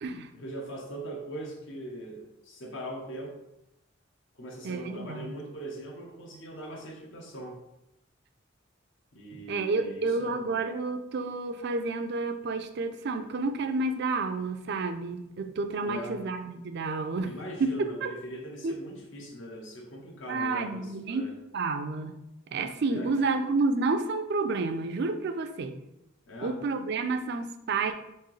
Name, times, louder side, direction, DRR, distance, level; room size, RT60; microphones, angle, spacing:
voice 1, 0.3-3.4 4.3-7.6 9.1-10.6 15.8-16.3 17.2-21.3 22.9-23.1 26.3-26.6, right 1 dB, 75° left, 0 dB, 1.0 m, -41 dB
voice 2, 4.6-5.4 9.5-17.3 17.6-18.1 18.6-18.7 20.3-21.3 21.5-22.2 22.5-25.8 26.4-27.9, right 3 dB, 60° right, 8 dB, 0.4 m, -30 dB
4.5 x 3.5 x 3.1 m, 0.87 s
head